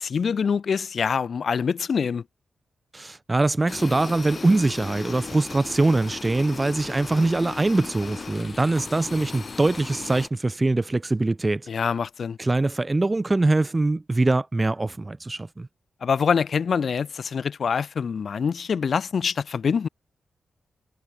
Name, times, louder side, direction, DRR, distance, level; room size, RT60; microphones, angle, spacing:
voice 1, 0.0-2.2 11.7-12.4 16.0-19.9, left 6 dB, 55° left, 2.5 m, -25 dB
voice 2, 2.9-11.7 12.4-15.7, right 2 dB, 20° right, 1.0 m, -23 dB
sound 1, 3.7-10.3, left 4 dB, 40° left, 3.2 m, -37 dB
wide cardioid pair, 130°, 0 cm